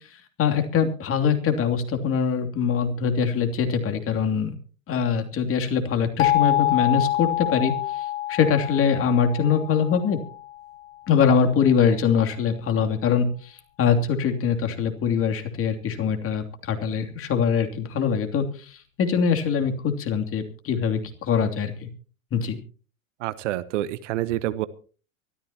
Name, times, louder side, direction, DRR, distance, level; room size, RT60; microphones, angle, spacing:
voice 1, 0.4-4.5 4.9-10.2 11.1-21.9 22.3-22.6, left 6 dB, 30° left, 5 dB, 2.9 m, -23 dB
sound 1, 6.2-10.9, left 14 dB, 70° left, 1.1 m, -26 dB
voice 2, 23.2-24.7, right 15 dB, 60° right, 16 dB, 1.1 m, -27 dB
24.0 x 14.0 x 2.9 m, 0.39 s
figure-of-eight pair, 90°, 42 cm